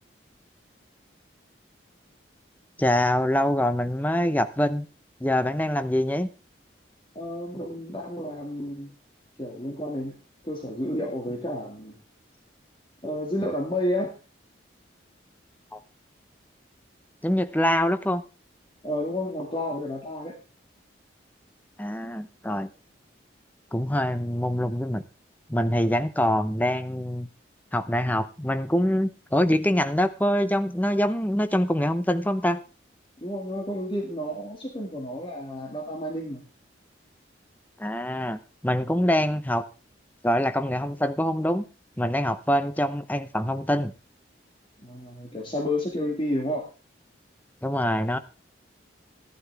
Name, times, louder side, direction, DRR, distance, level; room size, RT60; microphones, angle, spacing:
voice 1, 2.8-4.8 5.2-6.3 15.7-15.8 17.2-18.2 21.8-22.7 23.7-25.0 25.5-27.3 27.7-32.6 37.8-39.7 40.2-41.6 42.0-43.9 47.6-48.2, equal, 10° left, 10 dB, 0.7 m, -24 dB
voice 2, 7.2-8.9 9.4-10.2 10.4-12.0 13.0-14.2 18.8-20.4 33.2-36.4 44.8-46.6, left 1 dB, 25° left, 0 dB, 2.2 m, -31 dB
15.0 x 11.5 x 3.5 m, 0.33 s
head